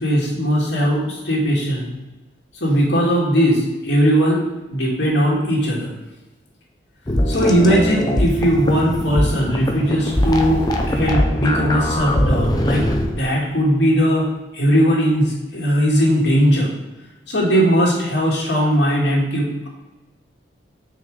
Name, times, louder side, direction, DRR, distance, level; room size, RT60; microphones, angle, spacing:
voice 1, 0.0-1.9 2.6-4.4 4.7-5.9 7.3-12.9 13.1-14.3 14.5-16.7 17.3-19.7, equal, 85° left, -4 dB, 2.2 m, -18 dB
sound 1, 7.1-13.1, left 1 dB, 25° left, 0.6 m, -21 dB
sound 2, 10.1-13.2, equal, 65° left, 1.9 m, -30 dB
5.9 x 4.8 x 4.8 m, 1.1 s
head